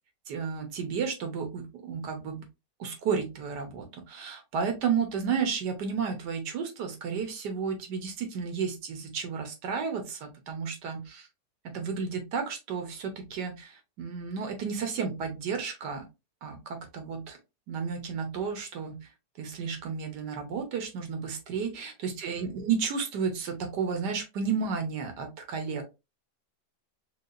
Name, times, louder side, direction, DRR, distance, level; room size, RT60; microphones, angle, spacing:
voice 1, 0.3-2.4 2.8-11.3 11.6-16.0 16.4-17.4 17.7-19.1 19.4-25.8, right 6 dB, 70° right, 5 dB, 1.4 m, -32 dB
4.7 x 2.4 x 2.4 m, 0.26 s
omnidirectional pair, 2.0 m